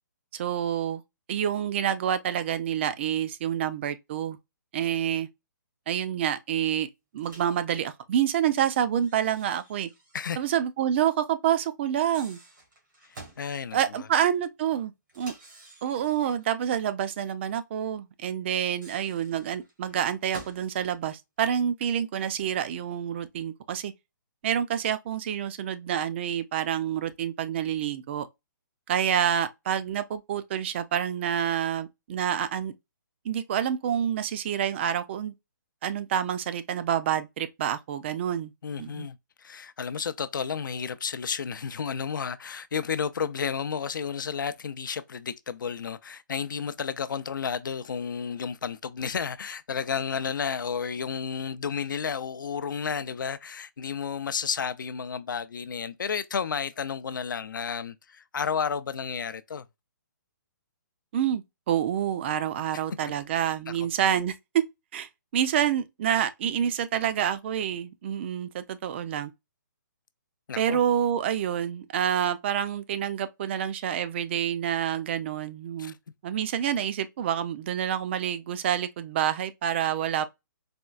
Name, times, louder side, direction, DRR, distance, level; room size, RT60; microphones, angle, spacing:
voice 1, 0.3-1.0 1.3-4.4 4.7-5.3 5.9-6.9 7.1-9.9 10.4-12.4 13.7-15.3 15.8-23.9 24.4-28.3 28.9-32.7 33.2-35.3 35.8-38.5 38.8-39.1 61.1-64.6 64.9-69.3 70.6-75.9 76.2-80.3, right 9 dB, 35° right, 0.4 m, -28 dB
Microwave oven, 7.2-7.6 9.0-10.4 10.6-10.7 11.9-13.5 15.1-16.5 18.5-20.7, right 2 dB, 85° right, 1.9 m, -50 dB
voice 2, 13.4-14.1 38.6-59.7 62.7-62.8 63.8-63.9 70.5-70.8 75.8-76.0, left 6 dB, 85° left, 0.4 m, -32 dB
4.2 x 2.2 x 2.4 m
hypercardioid pair, 150°, 10 cm